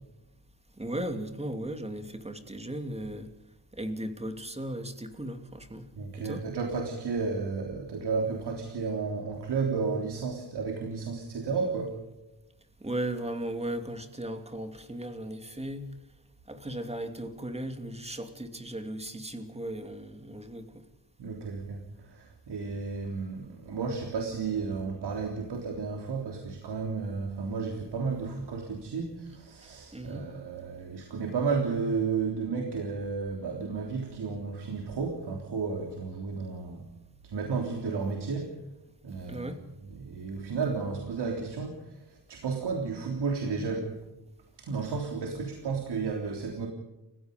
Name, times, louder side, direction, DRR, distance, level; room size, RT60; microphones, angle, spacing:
voice 1, 0.8-3.3 3.8-5.9 6.2-6.4 12.8-15.9 16.5-20.7 29.9-30.2 39.3-39.6, right 1 dB, 15° right, 7 dB, 2.8 m, -36 dB
voice 2, 6.0-12.0 21.2-36.9 37.2-38.6 39.0-39.5 39.8-44.0 44.6-46.7, right 4 dB, 70° right, 2 dB, 3.6 m, -32 dB
30.0 x 16.5 x 5.3 m, 0.99 s
cardioid pair, 95°, 42 cm